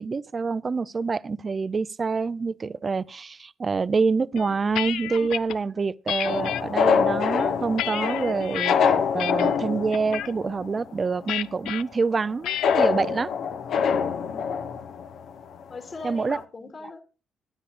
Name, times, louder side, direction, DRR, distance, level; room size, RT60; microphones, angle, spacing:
voice 1, 0.0-13.3 16.0-16.4, right 4 dB, 35° right, 0.5 m, -26 dB
sound 1, 4.4-5.6 6.1-6.6 7.2-8.7 9.2-9.6 9.9-10.3 11.3-11.8 12.4-12.8, left 12 dB, 85° left, 0.5 m, -31 dB
sound 2, 6.2-10.9 11.2-11.3 12.6-15.6 16.0-16.1 16.3-16.4, left 6 dB, 70° left, 1.1 m, -25 dB
voice 2, 14.1-14.5 15.7-17.0, left 4 dB, 40° left, 2.8 m, -40 dB
21.0 x 10.0 x 2.5 m
cardioid pair, 90°, 0 cm